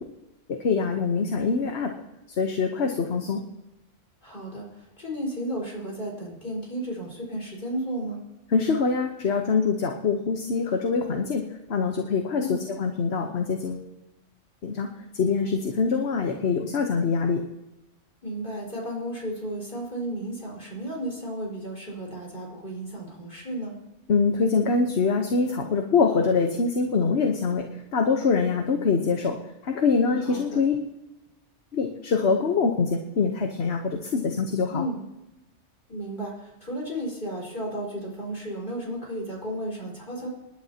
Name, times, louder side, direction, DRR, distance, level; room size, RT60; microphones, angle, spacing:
voice 1, 0.6-1.9 2.4-3.4 8.5-11.4 11.7-13.8 14.6-14.9 15.1-17.4 24.1-27.7 27.9-29.4 29.6-30.8 31.7-34.8, left 5 dB, 60° left, 3 dB, 1.3 m, -24 dB
voice 2, 4.2-4.7 5.0-8.2 12.4-12.7 18.2-23.7 30.2-30.6 34.7-35.0 35.9-40.3, right 1 dB, 40° left, -3 dB, 5.1 m, -33 dB
28.0 x 11.0 x 2.9 m, 0.98 s
omnidirectional pair, 1.3 m